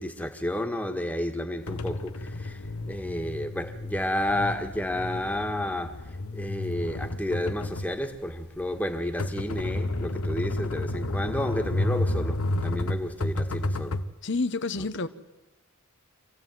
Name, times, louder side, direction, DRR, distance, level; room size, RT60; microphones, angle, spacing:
voice 1, 0.0-6.0 6.3-14.0 14.8-14.9, left 1 dB, 5° left, 1.8 m, -31 dB
sound 1, 1.7-14.1, left 2 dB, 80° left, 1.2 m, -31 dB
voice 2, 14.2-15.1, left 3 dB, 55° left, 1.0 m, -28 dB
26.0 x 16.5 x 9.3 m
head